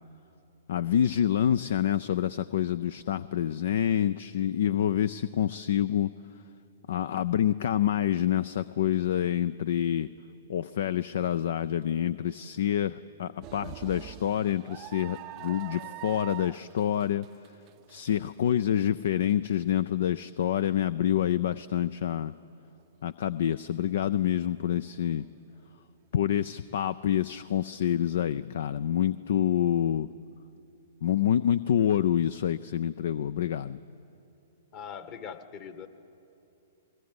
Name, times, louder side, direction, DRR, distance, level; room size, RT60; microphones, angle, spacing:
voice 1, 0.7-6.1 6.9-10.1 10.5-17.2 17.9-22.3 23.0-25.2 26.1-30.1 31.0-33.8, left 10 dB, 65° left, 17 dB, 0.4 m, -27 dB
sound 1, 13.4-19.5 20.0-20.1 21.3-21.5, right 18 dB, 35° right, 0.5 m, -44 dB
voice 2, 34.7-35.9, left 7 dB, 40° left, 9 dB, 1.7 m, -41 dB
21.0 x 19.0 x 9.6 m, 2.8 s
hypercardioid pair, 120°, 0 cm